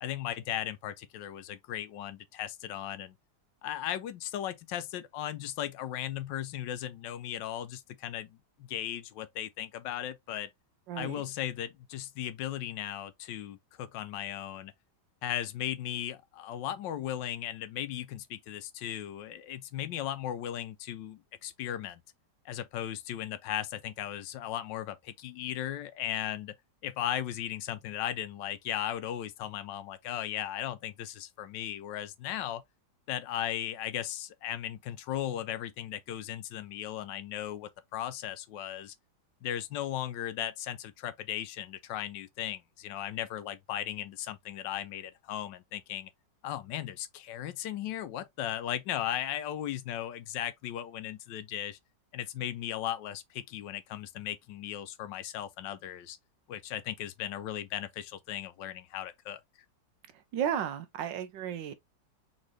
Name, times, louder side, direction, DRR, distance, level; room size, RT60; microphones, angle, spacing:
voice 1, 0.0-3.1 3.6-10.5 11.0-14.7 15.2-22.0 22.4-26.6 26.8-32.6 33.1-38.9 39.4-46.1 46.4-51.8 52.1-56.2 56.5-59.4, left 11 dB, 80° left, 1.3 m, -37 dB
voice 2, 10.9-11.2 60.3-61.7, right 9 dB, 85° right, 1.4 m, -33 dB
4.1 x 3.6 x 3.1 m
omnidirectional pair, 2.0 m